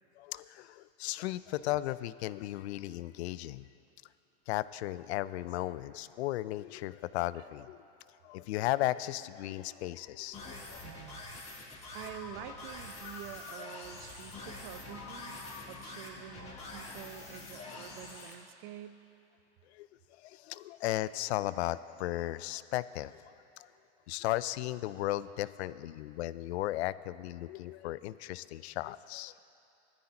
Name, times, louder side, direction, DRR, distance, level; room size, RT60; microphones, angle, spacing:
voice 1, 0.2-3.7 4.5-7.8 8.2-10.8 19.7-19.9 20.2-23.1 23.6-23.7 24.1-29.3, left 15 dB, 70° left, 17 dB, 0.5 m, -35 dB
sound 1, 10.3-18.3, left 2 dB, 20° left, 2.8 m, -46 dB
voice 2, 10.8-11.2 11.9-15.4 15.7-19.0, right 12 dB, 50° right, 11 dB, 0.7 m, -47 dB
Ringtone, 11.9-14.0 14.9-18.2, left 4 dB, 40° left, 1.3 m, -50 dB
17.5 x 14.0 x 2.9 m, 2.8 s
supercardioid pair, 125°, 34 cm